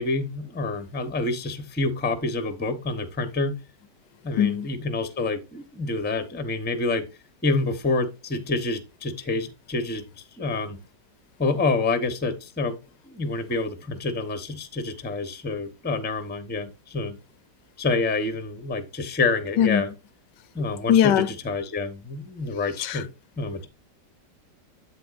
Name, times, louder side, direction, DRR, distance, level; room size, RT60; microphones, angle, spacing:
voice 1, 0.0-3.6 4.2-7.1 7.4-10.8 11.4-12.8 13.1-17.2 17.8-19.9 20.5-23.1 23.4-23.7, left 3 dB, 10° left, 0.6 m, -27 dB
voice 2, 20.9-21.3 22.8-23.0, left 10 dB, 85° left, 1.2 m, -20 dB
8.2 x 7.8 x 2.5 m
omnidirectional pair, 1.8 m